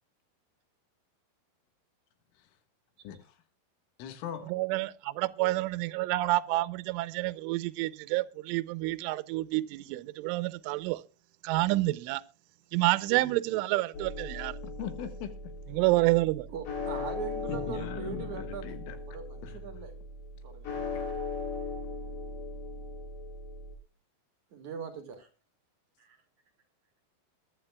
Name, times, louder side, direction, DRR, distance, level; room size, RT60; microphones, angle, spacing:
voice 1, 3.0-3.4 4.0-4.5 14.6-15.3 17.5-19.0 19.4-19.6, left 8 dB, 85° left, 4.0 m, -40 dB
voice 2, 4.5-11.0 11.4-12.2 12.7-14.6 15.7-16.5, right 19 dB, 85° right, 3.2 m, -28 dB
sound 1, 13.9-23.8, left 3 dB, 60° left, 5.2 m, -38 dB
voice 3, 16.5-19.9 20.4-20.9 24.5-25.3 26.0-26.2, right 6 dB, 55° right, 2.3 m, -41 dB
22.0 x 11.5 x 2.3 m
omnidirectional pair, 5.6 m